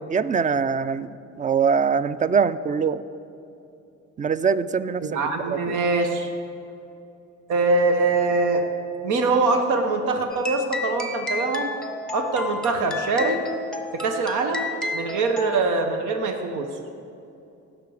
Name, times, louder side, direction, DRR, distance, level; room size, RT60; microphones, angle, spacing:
voice 1, 0.1-1.1 1.4-3.0 4.2-5.8, right 6 dB, 25° right, 15 dB, 0.4 m, -23 dB
voice 2, 5.0-6.3 7.5-8.6 9.0-11.7 12.1-13.4 13.9-14.7 14.9-16.7, right 3 dB, 85° right, 5 dB, 1.0 m, -23 dB
sound 1, 10.3-15.6, left 3 dB, 5° left, 1.0 m, -32 dB
18.0 x 6.0 x 4.9 m, 2.7 s
cardioid pair, 90°, 30 cm